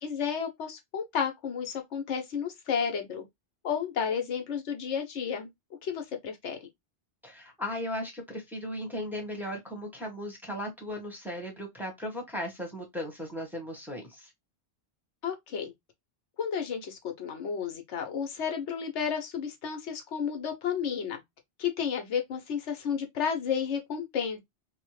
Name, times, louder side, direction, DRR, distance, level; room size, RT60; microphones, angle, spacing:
voice 1, 0.0-3.2 3.6-5.5 5.8-6.6 15.2-15.7 16.4-21.2 21.6-24.4, left 7 dB, 80° left, 1.0 m, -32 dB
voice 2, 7.2-14.3, left 1 dB, ahead, 0.8 m, -37 dB
2.9 x 2.1 x 3.0 m
omnidirectional pair, 1.2 m